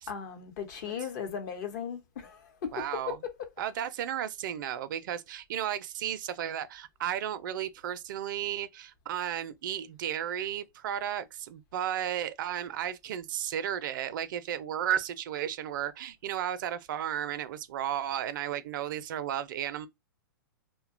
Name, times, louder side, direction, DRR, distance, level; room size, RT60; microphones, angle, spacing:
voice 1, 0.1-2.9 3.2-3.3, left 7 dB, 55° left, 0.8 m, -37 dB
voice 2, 2.7-3.2 3.6-19.9, right 10 dB, 65° right, 0.4 m, -34 dB
2.7 x 2.1 x 2.5 m
hypercardioid pair, 130°, 12 cm